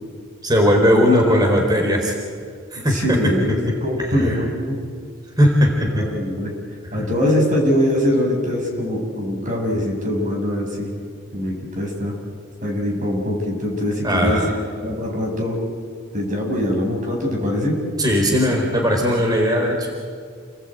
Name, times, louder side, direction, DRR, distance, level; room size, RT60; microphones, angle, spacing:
voice 1, 0.4-2.1 2.7-3.2 4.0-4.4 5.4-6.0 6.9-7.1 14.0-14.6 18.0-19.9, equal, 20° right, 1 dB, 4.1 m, -18 dB
voice 2, 2.9-4.8 5.9-6.5 6.9-10.9 11.3-12.1 12.6-14.4 14.8-15.6 16.1-17.7, equal, 40° right, 1 dB, 7.2 m, -22 dB
29.5 x 19.0 x 9.1 m, 2.1 s
head